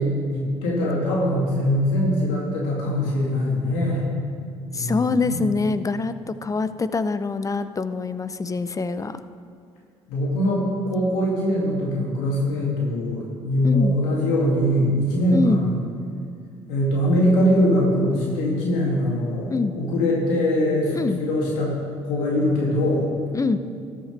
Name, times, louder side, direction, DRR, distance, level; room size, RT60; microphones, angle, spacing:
voice 1, 0.0-4.1 4.7-5.4 10.1-15.8 16.7-21.8 22.0-23.1, equal, 90° left, -4 dB, 2.5 m, -22 dB
voice 2, 4.7-9.2 13.6-14.0 15.3-15.6 19.5-19.7 20.9-21.2 23.3-23.6, left 4 dB, 25° left, 12 dB, 0.6 m, -24 dB
13.5 x 11.0 x 3.4 m, 2.4 s
supercardioid pair, 70°, 13 cm